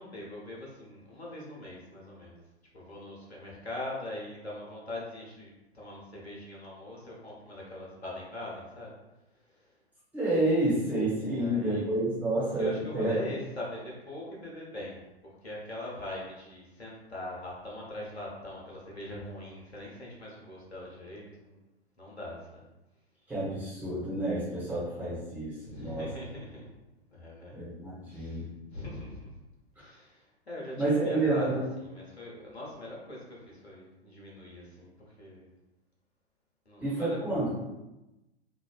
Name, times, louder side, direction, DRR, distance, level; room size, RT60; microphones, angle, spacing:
voice 1, 0.0-2.4 2.7-8.9 9.4-9.7 11.2-11.8 12.6-15.0 15.2-21.6 22.0-22.6 25.6-26.7 27.1-27.6 28.1-29.4 29.8-35.5 36.6-37.4, left 1 dB, 80° left, -4 dB, 1.1 m, -42 dB
voice 2, 10.1-13.3 23.3-26.1 27.5-28.5 30.8-31.6 36.8-37.7, right 1 dB, 5° right, -10 dB, 1.2 m, -29 dB
3.2 x 2.4 x 2.3 m, 0.99 s
figure-of-eight pair, 105°, 32 cm